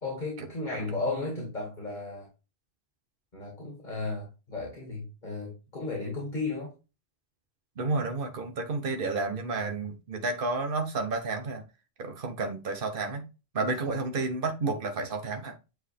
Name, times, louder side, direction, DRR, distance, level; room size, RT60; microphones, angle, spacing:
voice 1, 0.0-2.3 3.3-6.7 13.6-14.0, left 3 dB, 45° left, 2.4 m, -34 dB
voice 2, 7.8-11.6 12.0-13.2 13.5-15.6, right 3 dB, 55° right, 1.3 m, -31 dB
9.4 x 3.5 x 3.4 m
omnidirectional pair, 1.1 m